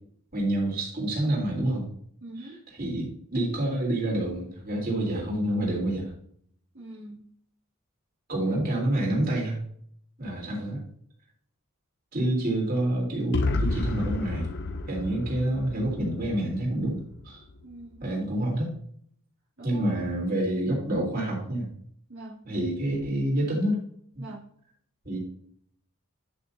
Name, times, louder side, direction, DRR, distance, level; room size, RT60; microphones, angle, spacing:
voice 1, 0.3-1.8 2.8-6.0 8.3-9.6 10.2-10.8 12.1-14.5 14.9-17.4 18.0-18.7 19.6-21.7 22.4-23.8 24.1-24.2 25.0-25.2, right 1 dB, 40° right, -3 dB, 3.6 m, -27 dB
voice 2, 2.2-2.6 6.7-7.2 17.6-18.0 19.6-19.9 22.1-22.4 24.2-24.4, right 1 dB, 60° right, -7 dB, 2.4 m, -42 dB
sound 1, 13.3-17.2, left 3 dB, 50° left, 0.7 m, -30 dB
10.5 x 6.1 x 2.7 m, 0.62 s
head